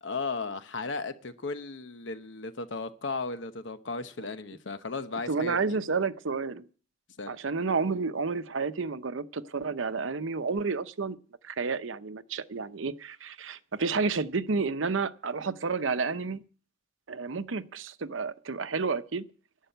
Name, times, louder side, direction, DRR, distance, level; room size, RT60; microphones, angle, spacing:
voice 1, 0.0-5.8 7.2-7.4, left 3 dB, 70° left, 1.0 m, -35 dB
voice 2, 5.3-6.7 7.3-11.2 11.4-16.4 17.1-19.3, right 4 dB, 90° right, 0.8 m, -30 dB
11.5 x 9.0 x 8.0 m
head